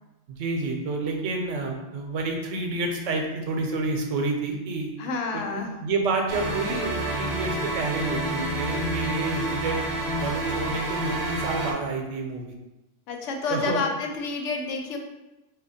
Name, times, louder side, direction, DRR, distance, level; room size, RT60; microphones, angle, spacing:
voice 1, 0.3-4.9 5.5-9.8 10.2-12.5 13.5-13.8, right 3 dB, 85° right, 2 dB, 1.0 m, -29 dB
voice 2, 5.0-5.8 13.1-15.0, left 4 dB, 85° left, 3 dB, 0.9 m, -29 dB
sound 1, 6.3-11.7, right 1 dB, 50° right, 0.7 m, -29 dB
2.8 x 2.3 x 4.1 m, 0.99 s
omnidirectional pair, 1.2 m